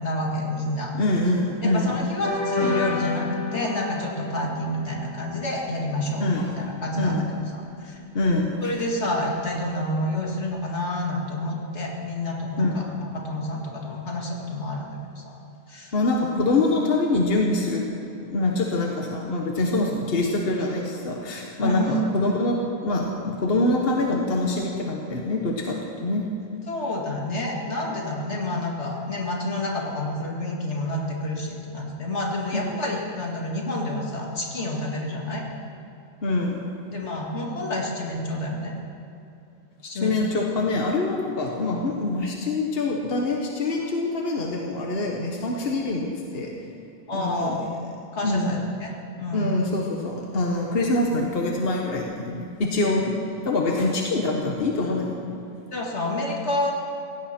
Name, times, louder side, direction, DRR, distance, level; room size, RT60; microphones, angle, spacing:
voice 1, 0.0-0.9 1.6-7.2 7.5-8.0 8.6-12.9 13.1-14.9 15.2-15.4 15.7-15.9 21.6-22.0 26.7-35.5 36.9-38.7 39.8-40.4 47.1-47.6 48.1-49.6 55.7-56.7, left 1 dB, 85° left, -1 dB, 2.5 m, -29 dB
voice 2, 1.0-2.0 6.2-6.5 6.9-7.2 8.1-8.7 12.6-12.7 15.9-17.8 18.2-26.2 32.5-32.8 36.2-36.7 40.0-46.5 47.1-47.6 48.2-48.6 49.3-53.1 53.4-55.4, left 2 dB, 60° left, 0 dB, 1.5 m, -25 dB
sound 1, 2.2-7.1, left 2 dB, 15° left, 2.9 m, -31 dB
17.0 x 16.0 x 4.4 m, 2.7 s
omnidirectional pair, 1.1 m